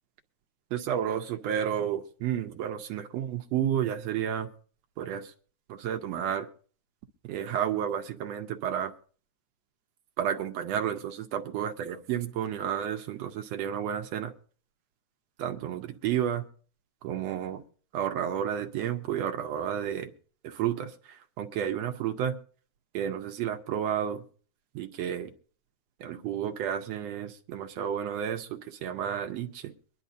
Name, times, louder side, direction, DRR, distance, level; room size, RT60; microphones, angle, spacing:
voice 1, 0.7-4.5 5.0-5.3 5.7-6.5 7.2-8.9 10.2-14.3 15.4-16.5 17.0-17.6 17.9-20.1 20.4-22.4 22.9-24.2 24.8-25.3 26.0-29.7, right 9 dB, 75° right, 6 dB, 1.7 m, -31 dB
23.5 x 11.0 x 2.6 m, 0.42 s
omnidirectional pair, 3.4 m